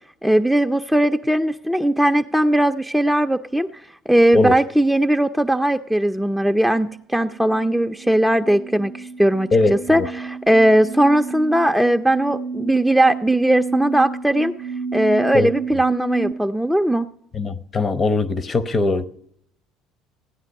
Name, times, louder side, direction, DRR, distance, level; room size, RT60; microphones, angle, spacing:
voice 1, 0.2-14.5 14.9-17.1, right 1 dB, ahead, 0.4 m, -19 dB
sound 1, 8.0-16.3, right 5 dB, 80° right, 0.5 m, -31 dB
voice 2, 9.5-10.1 15.3-15.5 17.3-19.1, left 3 dB, 35° left, 0.8 m, -20 dB
14.5 x 9.6 x 5.3 m
hypercardioid pair, 65°, 0 cm